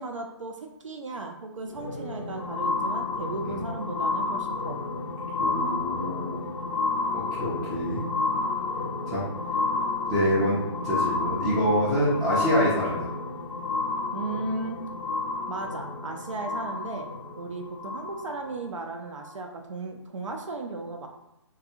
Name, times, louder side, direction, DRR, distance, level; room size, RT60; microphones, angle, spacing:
voice 1, 0.0-4.8 14.1-14.8 15.5-17.1 17.4-21.1, right 3 dB, 85° right, 3 dB, 0.4 m, -35 dB
sound 1, 1.7-18.5 19.3-19.4, left 3 dB, 80° left, 0.5 m, -31 dB
voice 2, 5.4-6.5 7.1-8.0 9.1-9.3 10.1-10.6 10.8-13.1, equal, 5° right, -13 dB, 0.3 m, -26 dB
2.4 x 2.3 x 2.8 m, 0.89 s
figure-of-eight pair, 145°, 16 cm